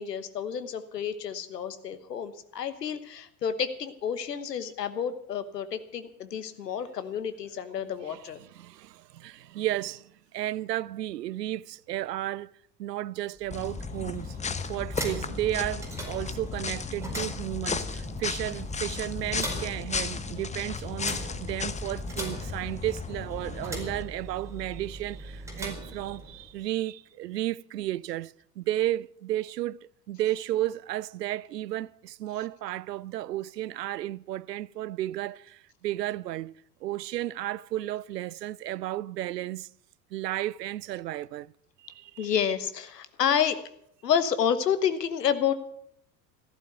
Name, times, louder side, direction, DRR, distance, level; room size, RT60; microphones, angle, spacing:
voice 1, 0.0-8.4 42.2-43.6 44.0-45.5, left 8 dB, 80° left, 1.2 m, -29 dB
voice 2, 8.0-12.5 12.8-14.4 14.7-36.5 36.8-39.7 40.1-41.5 41.8-42.3, right 14 dB, 80° right, 0.5 m, -33 dB
sound 1, 13.3-26.6, right 1 dB, 5° right, 4.8 m, -40 dB
sound 2, 13.5-24.0, left 5 dB, 15° left, 0.9 m, -35 dB
14.5 x 12.0 x 6.9 m
figure-of-eight pair, 75°, 48 cm